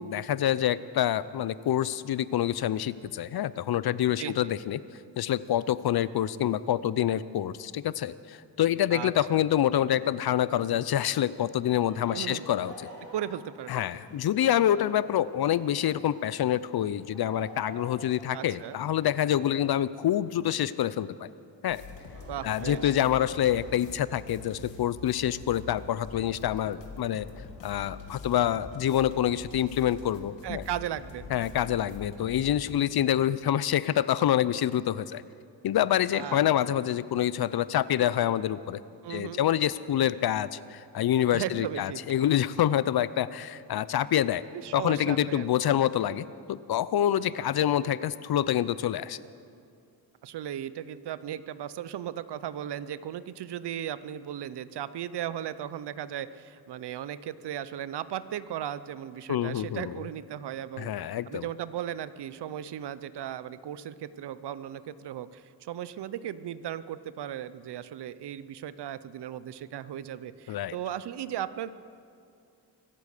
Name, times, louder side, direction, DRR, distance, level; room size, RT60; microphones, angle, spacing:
voice 1, 0.0-4.8 5.2-12.7 13.7-21.3 21.6-21.8 22.4-27.3 27.6-30.6 31.3-35.2 35.6-38.8 39.1-44.4 44.7-49.2 59.3-59.9 60.8-61.4 70.5-70.8, left 11 dB, 60° left, 17 dB, 0.6 m, -27 dB
voice 2, 4.2-4.5 8.9-9.4 12.1-12.5 13.1-14.0 18.3-18.8 22.3-23.0 30.4-31.3 36.1-36.4 37.5-37.6 39.0-39.4 41.3-42.0 44.5-45.7 50.2-71.7, right 10 dB, 70° right, 16 dB, 0.7 m, -36 dB
Laughter, 11.9-20.9 21.8-24.1, right 1 dB, 45° right, 4.7 m, -50 dB
sound 1, 21.7-32.7, left 4 dB, 90° left, 2.1 m, -45 dB
25.0 x 8.5 x 6.7 m, 2.4 s
cardioid pair, 80°, 42 cm